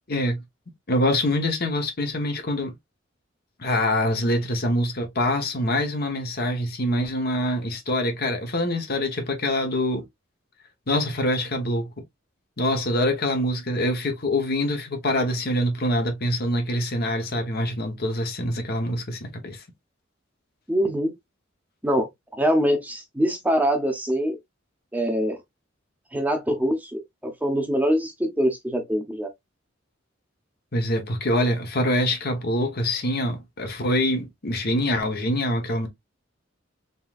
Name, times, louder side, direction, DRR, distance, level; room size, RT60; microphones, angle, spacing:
voice 1, 0.1-0.4 0.9-2.7 3.6-10.0 10.9-11.9 12.6-19.6 30.7-35.9, left 1 dB, 50° left, 1.2 m, -25 dB
voice 2, 20.7-21.1 21.8-24.4 24.9-25.4 26.1-29.3, equal, 10° right, 0.9 m, -24 dB
4.1 x 3.7 x 2.5 m
head